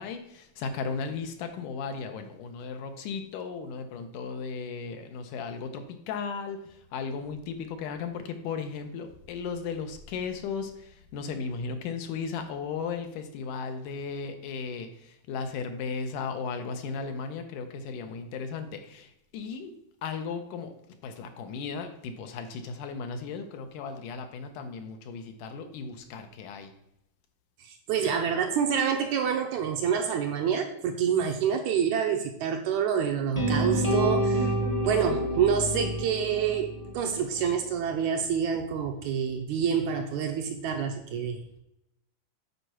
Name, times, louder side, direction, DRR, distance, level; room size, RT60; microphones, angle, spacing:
voice 1, 0.0-19.7 20.0-20.7 21.0-26.7 35.0-35.9, left 5 dB, 75° left, 7 dB, 2.3 m, -36 dB
voice 2, 27.6-34.5 34.9-41.4, right 7 dB, 75° right, 4 dB, 1.8 m, -27 dB
sound 1, 33.3-37.4, right 1 dB, 45° left, 0.3 m, -28 dB
8.3 x 4.5 x 6.0 m, 0.83 s
omnidirectional pair, 3.8 m